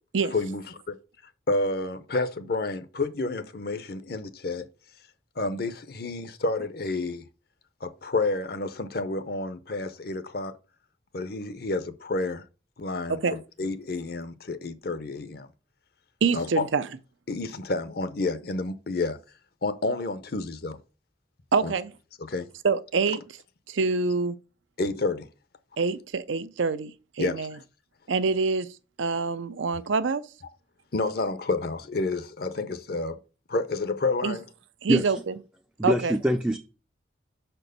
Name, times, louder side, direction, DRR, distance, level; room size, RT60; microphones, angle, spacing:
voice 1, 1.5-4.6 5.4-7.2 7.8-10.5 11.1-12.4 12.8-13.2 13.6-15.5 16.3-16.5 17.3-19.2 19.6-20.7 21.6-21.7 22.3-22.5 24.8-25.3 27.2-27.4 30.9-33.2 33.5-34.4, left 3 dB, 50° left, 0.7 m, -29 dB
voice 2, 16.2-16.9 21.5-21.9 22.6-23.4 23.7-24.4 25.8-26.9 27.2-27.6 28.1-28.7 29.0-30.2 34.2-34.4 34.8-35.3 35.8-36.1, right 4 dB, 80° right, 0.6 m, -26 dB
voice 3, 34.9-35.2 35.8-36.6, equal, 5° right, 0.4 m, -24 dB
6.0 x 4.5 x 6.5 m
head